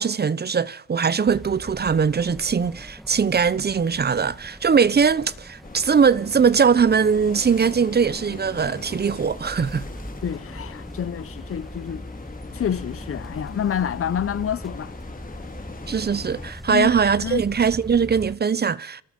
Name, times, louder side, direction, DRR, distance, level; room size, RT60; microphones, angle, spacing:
voice 1, 0.0-9.8 15.9-19.0, right 6 dB, 35° right, 1.0 m, -21 dB
sound 1, 1.3-18.4, equal, ahead, 1.6 m, -40 dB
sound 2, 5.6-16.5, left 4 dB, 30° left, 3.4 m, -41 dB
voice 2, 10.2-12.0 12.5-14.9 16.7-16.9 17.2-17.4, left 9 dB, 45° left, 1.0 m, -28 dB
29.5 x 26.5 x 5.4 m
cardioid pair, 90°, 30 cm